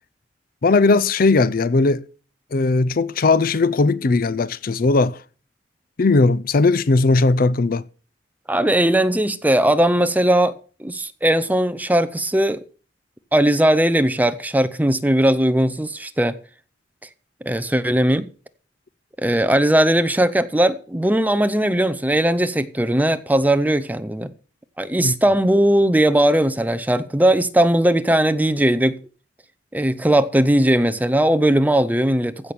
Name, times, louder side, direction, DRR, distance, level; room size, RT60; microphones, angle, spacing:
voice 1, 0.6-2.0 2.5-5.2 6.0-7.8 25.0-25.1, left 3 dB, 50° left, 0.5 m, -18 dB
voice 2, 8.5-12.6 13.3-16.4 17.4-18.3 19.2-24.3 24.8-29.0 29.7-32.5, right 1 dB, 10° right, 0.7 m, -18 dB
15.5 x 6.1 x 6.9 m
head